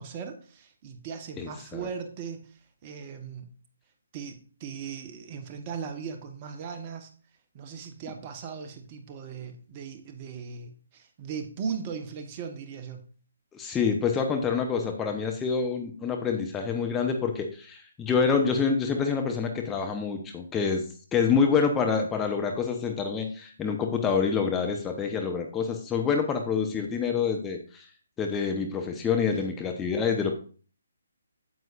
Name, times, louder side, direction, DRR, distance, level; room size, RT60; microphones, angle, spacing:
voice 1, 0.0-3.5 4.1-7.1 7.5-13.0 29.3-29.5, right 6 dB, 30° right, 6 dB, 1.1 m, -38 dB
voice 2, 1.4-1.8 13.5-20.8 21.1-27.8 28.2-30.4, left 5 dB, 10° left, 3 dB, 0.9 m, -27 dB
9.1 x 7.9 x 2.5 m, 0.40 s
figure-of-eight pair, 145°, 0 cm